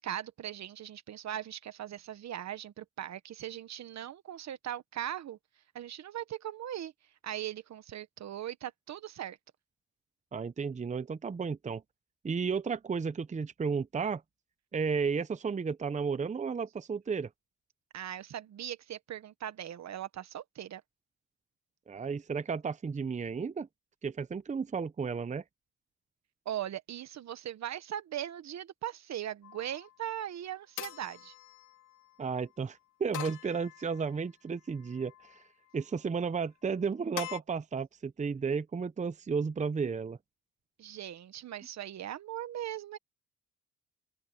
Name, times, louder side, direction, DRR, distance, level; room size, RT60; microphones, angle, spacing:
voice 1, 0.0-5.4 5.7-6.9 7.2-9.4 17.9-20.8 26.4-31.3 40.8-43.0, right 11 dB, 65° right, 1.3 m, -39 dB
voice 2, 10.3-11.8 12.2-14.2 14.7-17.3 21.9-23.7 24.0-25.4 32.2-35.4 35.7-40.2, right 5 dB, 25° right, 0.8 m, -33 dB
sound 1, 29.4-29.9 30.8-32.1 33.1-34.2 34.8-35.4 37.2-37.4, left 12 dB, 80° left, 3.1 m, -44 dB
open air
cardioid pair, 90°, 30 cm